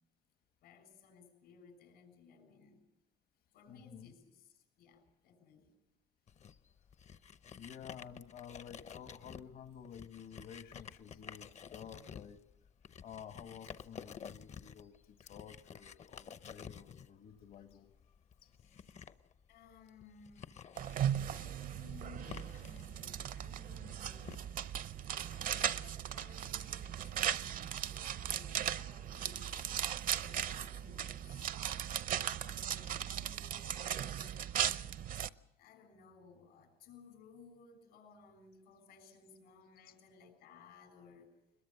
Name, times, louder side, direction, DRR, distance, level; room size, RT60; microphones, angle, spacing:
voice 1, 0.6-2.8 3.5-5.7 18.6-19.1 19.5-20.5 21.3-24.5 25.3-29.6 30.0-31.5 32.4-34.4 35.6-41.4, left 5 dB, 85° left, 7 dB, 6.7 m, -59 dB
voice 2, 3.7-4.1 7.5-12.4 13.0-17.9 18.4-18.5, left 8 dB, 65° left, 8 dB, 1.4 m, -52 dB
sound 1, 6.3-24.4, left 7 dB, 45° left, 0.8 m, -52 dB
sound 2, 20.8-35.3, right 10 dB, 55° right, 0.7 m, -38 dB
21.5 x 21.5 x 6.7 m, 0.87 s
cardioid pair, 110°, 17 cm